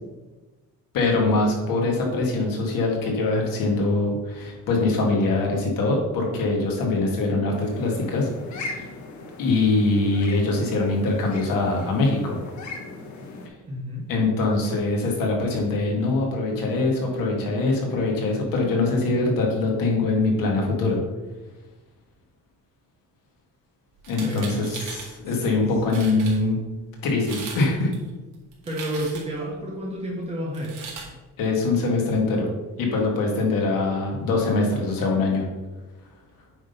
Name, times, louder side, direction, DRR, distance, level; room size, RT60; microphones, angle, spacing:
voice 1, 0.9-8.3 8.5-8.9 9.4-12.4 14.1-21.0 24.1-26.6 27.0-27.9 31.4-32.5 32.8-35.4, left 3 dB, 85° left, 0 dB, 2.1 m, -23 dB
sound 1, 7.5-13.5, left 3 dB, 60° left, 1.3 m, -39 dB
voice 2, 13.7-14.0 24.2-24.7 25.2-25.5 28.6-30.8, equal, 20° right, -4 dB, 1.2 m, -30 dB
sound 2, 24.0-25.1 25.6-25.7 25.9-26.4 27.1-27.6 27.9-29.4 30.5-31.1, right 5 dB, 65° right, 2.1 m, -38 dB
8.6 x 3.8 x 5.4 m, 1.2 s
cardioid pair, 170°, 32 cm